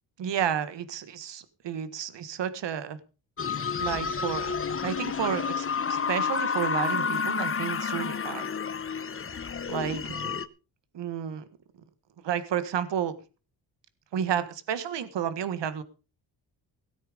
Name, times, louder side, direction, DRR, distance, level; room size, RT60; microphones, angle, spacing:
voice 1, 0.2-3.0 3.8-8.5 9.7-10.4 10.9-11.4 12.2-13.1 14.1-15.8, right 9 dB, 70° right, 13 dB, 1.6 m, -31 dB
sound 1, 3.4-10.5, left 6 dB, 30° left, 0.9 m, -30 dB
17.5 x 9.0 x 5.1 m, 0.34 s
cardioid pair, 110°, 44 cm